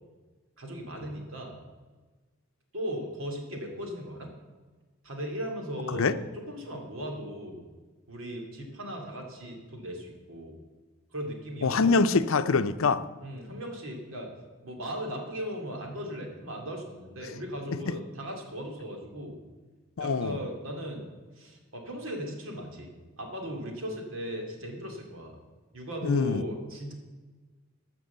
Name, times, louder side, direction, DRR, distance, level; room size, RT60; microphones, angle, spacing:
voice 1, 0.6-1.6 2.7-4.3 5.0-7.6 8.1-10.6 11.1-12.0 13.2-14.3 14.6-19.4 20.0-21.1 21.4-22.9 23.2-25.4 25.7-26.9, equal, 80° right, 2 dB, 2.6 m, -37 dB
voice 2, 11.6-13.0 20.0-20.4 26.0-26.4, left 4 dB, 85° left, 12 dB, 0.6 m, -24 dB
12.5 x 6.1 x 8.0 m, 1.3 s
head